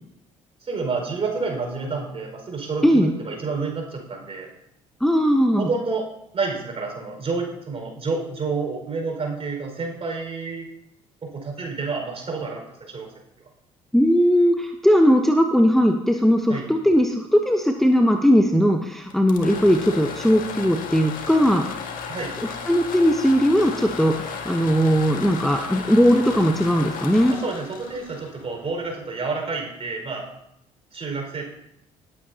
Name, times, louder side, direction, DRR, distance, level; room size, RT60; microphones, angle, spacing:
voice 1, 0.6-4.5 5.6-6.0 6.3-10.7 11.2-13.1 16.5-16.7 22.1-22.3 27.3-30.2 30.9-31.4, right 4 dB, 40° right, 1 dB, 5.0 m, -29 dB
voice 2, 5.0-5.7 13.9-21.6 22.7-27.3, equal, ahead, 4 dB, 0.9 m, -18 dB
sound 1, 19.1-28.9, left 6 dB, 60° left, 1.7 m, -35 dB
19.0 x 8.7 x 2.8 m, 0.79 s
hypercardioid pair, 55°, 16 cm